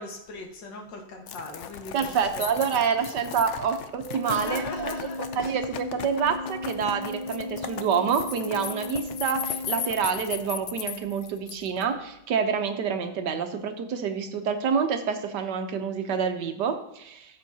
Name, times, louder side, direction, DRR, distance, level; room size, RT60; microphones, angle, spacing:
voice 1, 0.0-1.9 2.3-2.4 2.7-2.8 4.2-5.5, left 2 dB, 75° left, 2 dB, 2.1 m, -38 dB
sound 1, 1.3-11.8, left 9 dB, 90° left, 0.6 m, -37 dB
voice 2, 1.9-17.4, right 6 dB, 70° right, 7 dB, 1.4 m, -27 dB
Organ, 4.1-10.6, left 2 dB, 90° right, 1.7 m, -37 dB
16.0 x 7.3 x 2.8 m, 0.84 s
omnidirectional pair, 2.0 m